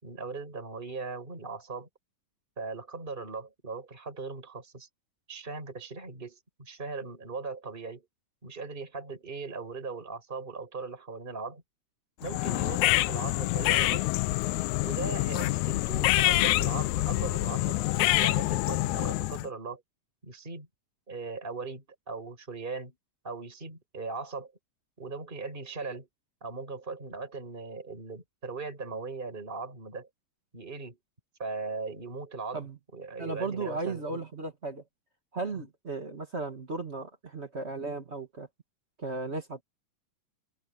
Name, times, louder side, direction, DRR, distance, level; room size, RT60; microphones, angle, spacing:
voice 1, 0.0-1.9 2.6-4.9 5.3-8.0 8.4-11.6 12.2-14.1 14.7-19.8 20.2-20.7 21.1-22.9 23.2-24.5 25.0-26.1 26.4-30.1 30.5-31.0 31.4-32.6 32.9-34.2 35.5-35.6, right 4 dB, 15° right, 5.2 m, -39 dB
sound 1, 12.2-19.5, left 19 dB, 85° left, 1.6 m, -26 dB
voice 2, 33.2-34.8 35.3-38.5 39.0-39.6, right 3 dB, 35° right, 1.0 m, -35 dB
omnidirectional pair, 4.0 m